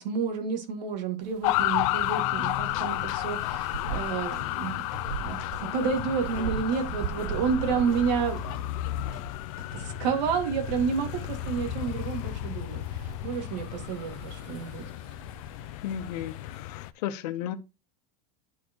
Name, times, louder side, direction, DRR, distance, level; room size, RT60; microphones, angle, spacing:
voice 1, 0.0-4.8 5.2-8.6 9.7-14.9, right 6 dB, 85° right, 2.3 m, -30 dB
sound 1, 1.2-16.6, right 8 dB, 35° right, 0.4 m, -42 dB
sound 2, 1.4-16.9, left 17 dB, 55° left, 0.5 m, -32 dB
sound 3, 4.3-9.2 9.6-10.1, right 2 dB, 60° right, 4.1 m, -45 dB
voice 2, 15.8-17.6, left 10 dB, 70° left, 1.0 m, -34 dB
12.0 x 4.4 x 3.1 m
supercardioid pair, 175°, 21 cm